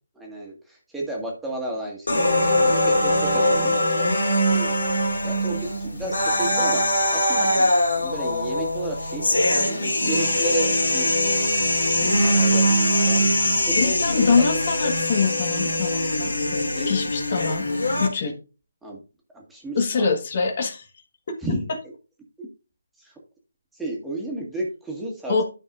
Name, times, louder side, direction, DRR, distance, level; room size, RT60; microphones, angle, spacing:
voice 1, 0.2-0.5 0.9-3.8 4.5-4.7 5.2-5.7 6.0-6.8 7.1-7.7 8.0-9.2 9.5-11.1 12.0-13.3 13.7-14.0 16.8-16.9 18.8-19.0 19.5-20.1 21.4-21.6 23.8-25.3, right 1 dB, 5° right, -2 dB, 1.9 m, -32 dB
sound 1, 2.1-18.1, left 1 dB, 85° left, 3.1 m, -22 dB
voice 2, 13.7-17.7 18.0-18.3 19.7-20.9 21.3-21.4 21.7-21.8 25.3-25.4, left 5 dB, 45° left, 5 dB, 1.6 m, -24 dB
12.5 x 5.4 x 2.5 m, 0.32 s
figure-of-eight pair, 155°, 0 cm